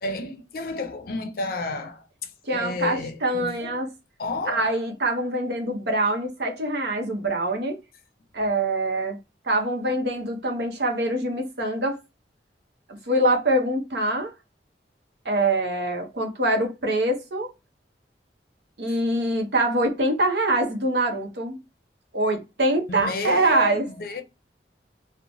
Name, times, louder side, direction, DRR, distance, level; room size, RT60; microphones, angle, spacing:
voice 1, 0.0-3.8 4.2-4.8 22.9-24.2, left 3 dB, 55° left, 0.5 m, -31 dB
voice 2, 2.4-3.9 4.5-7.8 8.3-9.2 9.4-12.0 13.1-14.3 15.2-17.5 18.8-21.6 22.1-23.8, right 1 dB, 70° right, 0.8 m, -24 dB
2.9 x 2.1 x 2.6 m
head